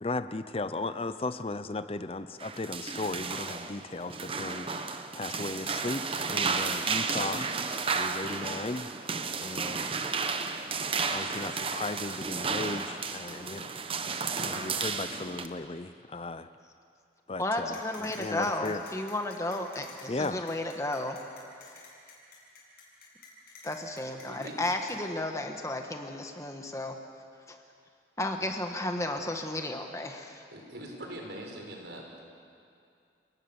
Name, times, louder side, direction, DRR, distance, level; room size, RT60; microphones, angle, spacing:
voice 1, 0.0-4.9 5.1-7.5 7.9-8.9 9.4-10.0 11.1-13.7 14.3-16.5 17.3-18.8 20.1-20.5, left 2 dB, 30° left, 12 dB, 0.6 m, -36 dB
sound 1, 2.4-15.5, right 4 dB, 30° right, 1.0 m, -33 dB
voice 2, 17.4-21.2 23.6-27.0 27.5-27.6 28.2-30.4, left 1 dB, 15° left, 4 dB, 1.5 m, -33 dB
sound 2, 17.7-24.9, left 5 dB, 55° left, 7.2 m, -50 dB
voice 3, 24.2-24.6 30.5-32.2, right 1 dB, 75° right, 1 dB, 5.1 m, -42 dB
29.5 x 19.5 x 7.1 m, 2.4 s
head